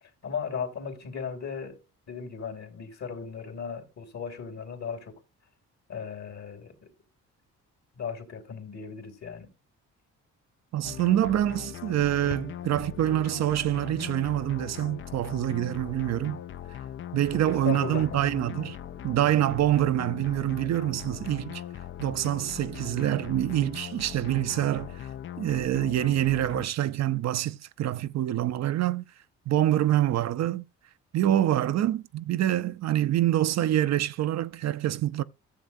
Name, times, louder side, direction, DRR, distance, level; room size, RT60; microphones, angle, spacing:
voice 1, 0.2-1.8 2.1-5.2 5.9-6.9 7.9-9.5 17.3-18.2, left 6 dB, 60° left, 2.8 m, -36 dB
voice 2, 10.7-16.4 17.1-18.8 19.0-21.6 22.0-25.0 25.4-29.1 29.5-30.6 31.1-35.2, right 13 dB, 60° right, 0.6 m, -26 dB
sound 1, 10.8-26.7, left 10 dB, 40° left, 0.4 m, -40 dB
14.0 x 7.1 x 2.6 m
cardioid pair, 90°, 30 cm